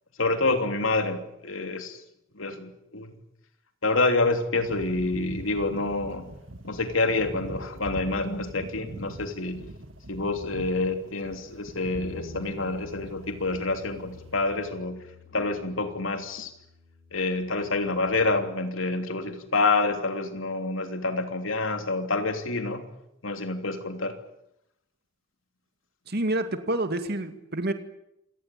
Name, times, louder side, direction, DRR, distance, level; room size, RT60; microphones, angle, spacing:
voice 1, 0.2-2.0 2.3-3.1 3.8-6.3 6.6-9.7 10.1-15.1 15.3-16.5 17.1-22.8 23.2-24.1, left 3 dB, 80° left, 6 dB, 3.1 m, -27 dB
sound 1, 4.6-14.7, right 1 dB, 70° right, 1.9 m, -43 dB
Bass guitar, 12.0-18.2, left 3 dB, ahead, 4.6 m, -48 dB
voice 2, 26.1-27.7, right 1 dB, 55° right, 8 dB, 2.2 m, -28 dB
27.0 x 18.5 x 9.2 m, 0.83 s
head